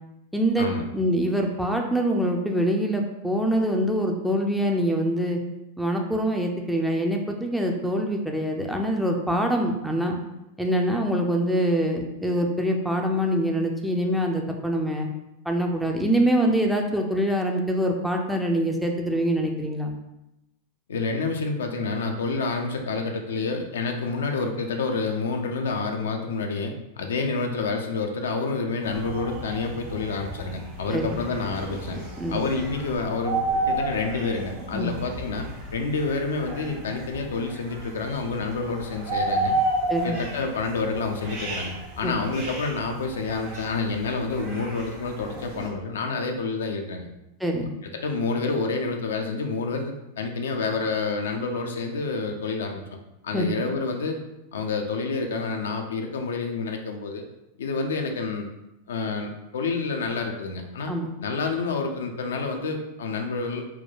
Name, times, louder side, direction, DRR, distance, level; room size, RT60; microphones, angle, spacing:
voice 1, 0.3-0.7 0.9-5.4 5.8-10.2 10.6-15.1 15.5-19.9 30.9-31.2 32.2-32.4 34.7-34.9 39.9-40.2 42.0-42.2 47.4-47.7 53.3-53.6 60.9-61.1, equal, ahead, 1 dB, 0.5 m, -24 dB
voice 2, 20.9-32.0 32.3-39.5 40.0-47.1 47.8-53.0 53.2-54.2 54.5-57.2 57.6-58.5 58.9-60.9 61.2-63.6, left 4 dB, 65° left, 4 dB, 0.5 m, -28 dB
sound 1, 28.8-45.7, right 2 dB, 45° right, 1.3 m, -32 dB
4.3 x 2.2 x 3.8 m, 0.91 s
figure-of-eight pair, 90°, 0 cm